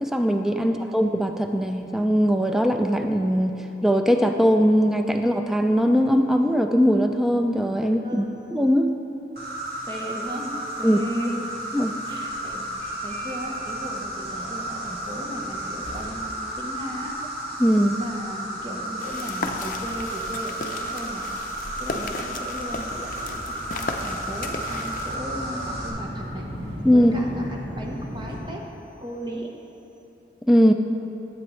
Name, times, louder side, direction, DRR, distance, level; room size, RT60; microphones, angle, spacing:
voice 1, 0.0-8.9 10.8-11.0 11.7-11.9 17.6-18.0 26.8-27.1 30.5-30.7, equal, ahead, 5 dB, 0.3 m, -20 dB
voice 2, 7.8-8.4 9.9-11.4 12.1-17.2 17.9-21.3 21.8-26.4 26.9-28.7 29.0-29.5, equal, 25° right, -1 dB, 1.0 m, -36 dB
Insect, 9.4-25.9, right 1 dB, 60° right, 1.7 m, -33 dB
Subway metro underground, 12.8-28.4, equal, 80° right, 2.1 m, -40 dB
sound 1, 19.0-25.2, left 3 dB, 45° left, 0.6 m, -35 dB
13.0 x 7.8 x 3.1 m, 2.9 s
head